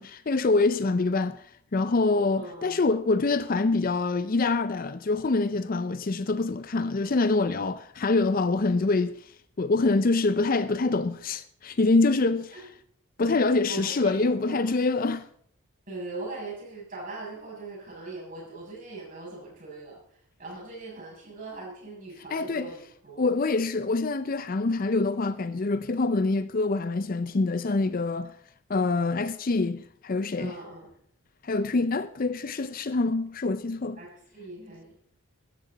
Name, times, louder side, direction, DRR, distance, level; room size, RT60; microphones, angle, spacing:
voice 1, 0.0-12.7 13.2-15.3 22.3-22.7 23.2-28.3 28.7-30.5 31.4-34.0, left 3 dB, 40° left, 0.5 m, -25 dB
voice 2, 2.4-2.8 12.5-12.7 13.7-14.7 15.9-23.4 30.4-30.9 34.0-35.0, right 2 dB, 35° right, 6.8 m, -41 dB
15.0 x 13.0 x 4.0 m
head